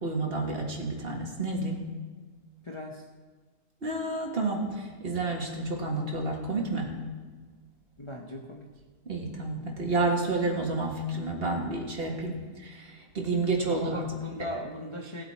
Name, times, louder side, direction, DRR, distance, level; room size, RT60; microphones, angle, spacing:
voice 1, 0.0-1.8 3.8-6.9 9.1-14.0, right 2 dB, 40° right, 0 dB, 2.0 m, -30 dB
voice 2, 2.6-3.1 8.0-8.7 13.7-15.2, left 1 dB, 25° left, 1 dB, 0.8 m, -38 dB
17.5 x 8.0 x 4.3 m, 1.4 s
omnidirectional pair, 1.6 m